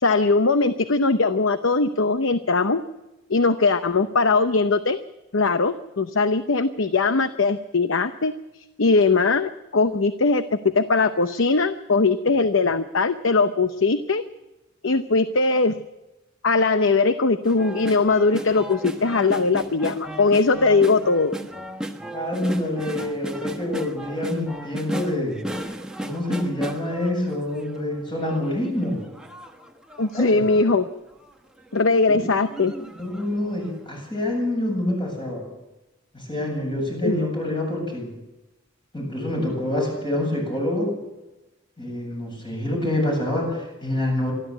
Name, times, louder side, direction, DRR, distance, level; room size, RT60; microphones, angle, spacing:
voice 1, 0.0-2.8 3.3-5.0 5.3-10.4 10.7-14.2 14.8-15.8 16.4-21.4 30.0-30.9 31.7-32.7 37.0-37.1, left 3 dB, 70° left, 10 dB, 0.8 m, -20 dB
sound 1, 17.4-27.8 28.2-30.6 31.2-31.3 31.6-31.8 32.4-33.3 33.7-33.8, right 1 dB, 5° right, 1.3 m, -35 dB
voice 2, 22.1-25.4 26.0-29.1 30.1-30.4 32.1-32.3 32.5-35.4 36.1-38.1 38.9-40.9 41.8-44.3, left 1 dB, 25° left, 0 dB, 7.9 m, -26 dB
25.5 x 12.5 x 8.1 m, 1.0 s
head